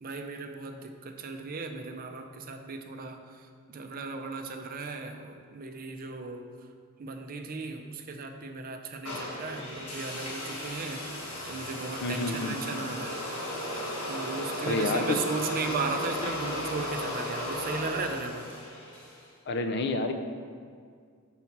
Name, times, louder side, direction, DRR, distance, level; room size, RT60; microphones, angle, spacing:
voice 1, 0.0-6.5 7.0-13.2 14.1-18.5, right 4 dB, 40° right, 5 dB, 0.5 m, -36 dB
sound 1, 9.0-19.2, left 1 dB, 85° left, 1.6 m, -35 dB
sound 2, 9.6-9.7 10.1-11.5 11.8-13.1 13.6-14.6 15.1-15.5 16.2-16.8, left 1 dB, 25° left, 0.9 m, -47 dB
voice 2, 12.0-12.6 14.6-15.2 19.5-20.1, left 3 dB, 50° left, 6 dB, 0.5 m, -29 dB
5.9 x 4.0 x 5.9 m, 2.1 s
head